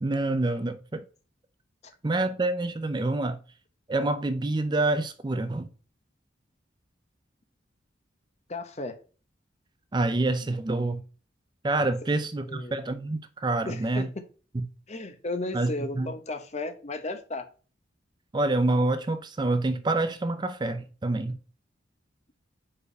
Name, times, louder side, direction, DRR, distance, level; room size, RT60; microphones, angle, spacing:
voice 1, 0.0-1.0 2.0-3.4 3.9-5.7 9.9-11.0 11.6-14.1 14.5-14.7 15.5-15.7 16.0-16.1 18.3-21.4, right 2 dB, 25° right, 0.4 m, -27 dB
voice 2, 8.5-9.0 12.5-12.7 13.6-14.2 14.9-17.5, left 2 dB, 35° left, 0.8 m, -34 dB
5.0 x 4.7 x 4.9 m
head